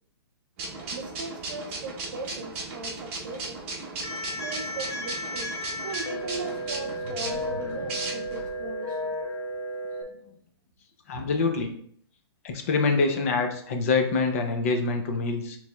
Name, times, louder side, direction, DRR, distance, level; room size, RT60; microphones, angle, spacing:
sound 1, 0.6-8.5, right 3 dB, 30° right, 0.9 m, -36 dB
voice 1, 0.9-3.6 4.4-5.5 5.8-9.1 11.2-11.6, right 3 dB, 45° right, 3 dB, 0.5 m, -39 dB
sound 2, 4.0-10.0, equal, 80° left, 1.1 m, -34 dB
sound 3, 6.1-9.6, right 1 dB, 5° right, 1.3 m, -45 dB
voice 2, 11.1-11.7 12.4-15.6, left 4 dB, 30° left, 4 dB, 0.6 m, -25 dB
6.7 x 3.1 x 2.3 m, 0.64 s
hypercardioid pair, 170°, 14 cm